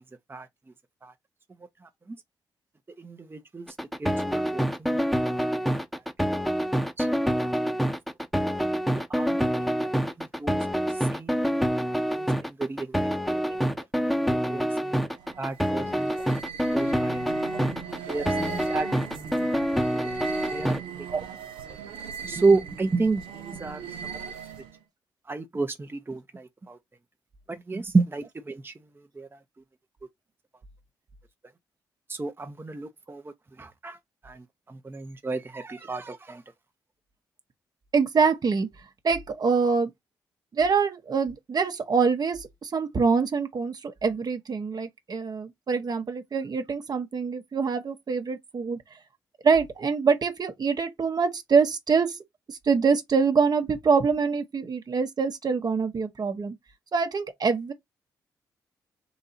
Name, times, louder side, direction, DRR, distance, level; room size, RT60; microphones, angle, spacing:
voice 1, 3.0-3.7 4.0-5.1 7.0-7.3 8.9-9.7 10.2-10.7 11.1-11.3 12.1-13.4 14.3-15.0 15.4-16.1 16.7-17.4 18.1-19.7 20.5-21.1 22.2-24.1 25.3-26.8 27.5-28.7 29.1-29.3 32.1-34.0 34.2-36.4, right 3 dB, 25° right, 0.8 m, -31 dB
sound 1, 3.7-20.8, equal, ahead, 1.0 m, -26 dB
sound 2, 15.1-24.8, right 7 dB, 85° right, 0.8 m, -39 dB
voice 2, 37.9-38.7 39.0-39.9 40.5-48.8 49.4-52.2 52.5-56.6 56.9-57.7, right 5 dB, 50° right, 1.0 m, -25 dB
4.0 x 2.7 x 4.1 m
hypercardioid pair, 45°, 9 cm